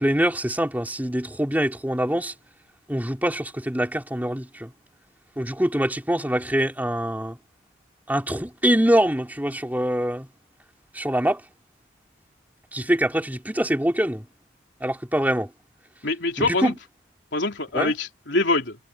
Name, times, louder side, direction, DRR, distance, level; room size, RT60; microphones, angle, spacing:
voice 1, 0.0-2.3 2.9-4.7 5.4-7.4 8.1-10.3 10.9-11.4 12.7-14.2 14.8-15.5 16.5-16.7 17.7-17.9, equal, 10° right, 3.1 m, -24 dB
voice 2, 16.0-16.7 17.3-18.8, left 2 dB, 65° left, 3.7 m, -24 dB
head